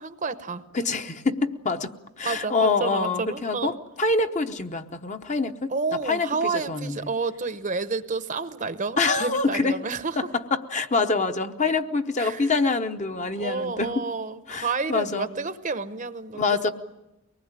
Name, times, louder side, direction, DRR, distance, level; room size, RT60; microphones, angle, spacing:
voice 1, 0.0-0.6 2.2-3.8 5.7-10.3 12.2-12.4 13.3-16.7, right 4 dB, 35° right, 12 dB, 0.8 m, -30 dB
voice 2, 0.7-1.9 2.2-5.7 6.0-7.1 9.0-9.8 10.2-14.0 14.5-15.3 16.3-16.7, left 3 dB, 30° left, 7 dB, 0.9 m, -25 dB
24.0 x 19.5 x 9.0 m, 0.96 s
head